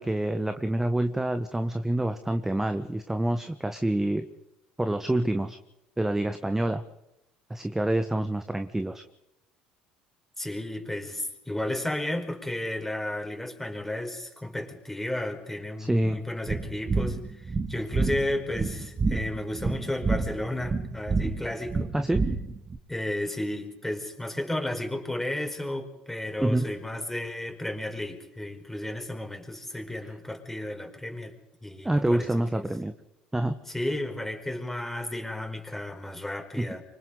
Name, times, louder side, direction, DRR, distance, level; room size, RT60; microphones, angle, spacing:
voice 1, 0.0-4.3 4.8-5.6 6.0-6.8 7.5-9.0 15.8-16.2 21.9-22.2 26.4-26.7 30.0-30.1 31.8-32.9 33.3-33.6 36.6-36.7, right 1 dB, 10° right, 8 dB, 1.4 m, -27 dB
voice 2, 10.4-21.9 22.9-32.7 33.7-36.8, left 1 dB, 5° left, 3 dB, 5.0 m, -33 dB
sound 1, 16.5-22.8, right 4 dB, 30° right, 2.4 m, -28 dB
27.5 x 25.0 x 4.0 m, 0.89 s
hypercardioid pair, 65°, 4 cm